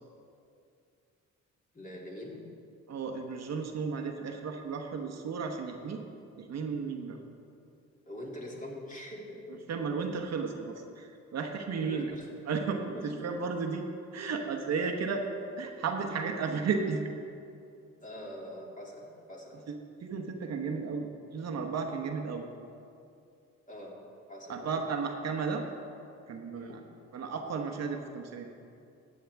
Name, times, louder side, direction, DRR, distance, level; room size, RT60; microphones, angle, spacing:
voice 1, 1.7-2.4 8.1-9.7 11.8-12.3 12.9-13.2 18.0-19.6 23.7-24.0 24.3-24.8 26.5-26.9, left 1 dB, 25° left, -3 dB, 2.5 m, -43 dB
voice 2, 2.9-6.0 6.4-7.2 9.7-12.1 12.5-13.8 14.1-15.3 15.6-17.0 20.0-22.4 24.5-25.6 26.3-26.8 27.1-28.5, right 5 dB, 60° right, 3 dB, 1.1 m, -34 dB
14.5 x 8.7 x 3.5 m, 2.5 s
cardioid pair, 90°, 30 cm